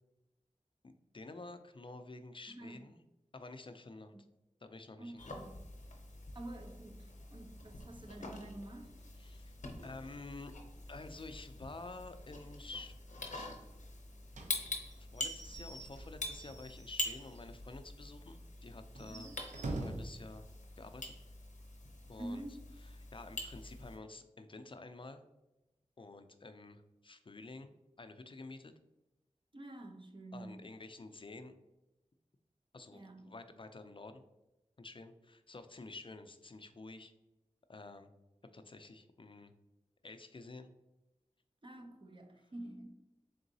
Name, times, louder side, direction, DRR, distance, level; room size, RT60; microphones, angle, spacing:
voice 1, 0.8-3.0 3.3-4.2 4.6-5.5 9.2-9.5 9.8-10.5 10.9-13.0 13.3-13.6 15.0-19.3 19.7-20.5 20.8-21.1 22.1-22.4 23.1-25.2 26.0-27.7 28.0-28.7 30.3-31.6 32.7-34.2 34.8-37.1 37.7-38.1 38.5-39.5 40.0-40.7, left 3 dB, 45° left, 0.4 m, -50 dB
voice 2, 2.5-2.8 5.0-5.6 6.3-8.9 19.1-19.4 22.2-22.7 29.5-30.6 32.9-33.3 41.6-43.0, right 1 dB, 40° right, 0.6 m, -48 dB
sound 1, 5.2-24.0, left 2 dB, 85° left, 0.7 m, -45 dB
Slam / Squeak / Wood, 14.3-17.5 17.9-18.0 18.3-18.4 18.9-20.2, right 2 dB, 85° right, 0.5 m, -45 dB
3.9 x 3.6 x 2.6 m
wide cardioid pair, 50°, 12 cm